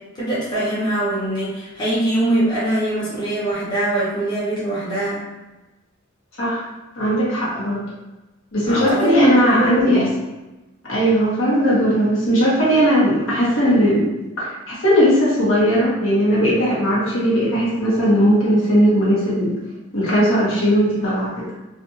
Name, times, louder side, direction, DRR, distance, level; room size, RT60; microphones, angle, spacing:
voice 1, 0.1-5.2 8.7-10.0, right 1 dB, 20° left, -10 dB, 0.9 m, -21 dB
voice 2, 7.0-7.8 8.5-10.0 10.9-19.6 19.9-21.5, equal, 70° left, -8 dB, 1.1 m, -18 dB
2.5 x 2.4 x 2.7 m, 1.1 s
head